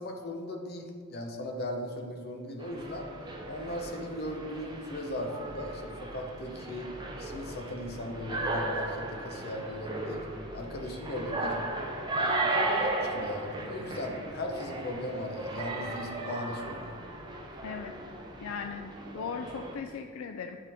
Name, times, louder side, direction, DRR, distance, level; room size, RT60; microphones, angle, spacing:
voice 1, 0.0-3.1 3.5-6.9 7.2-10.3 10.5-11.6 12.2-16.9, left 1 dB, 45° left, 3 dB, 0.8 m, -38 dB
sound 1, 2.6-19.8, right 2 dB, 20° right, 0.6 m, -36 dB
voice 2, 17.6-17.9 18.4-20.6, left 5 dB, 70° left, 5 dB, 0.3 m, -38 dB
10.0 x 3.8 x 3.5 m, 2.1 s
head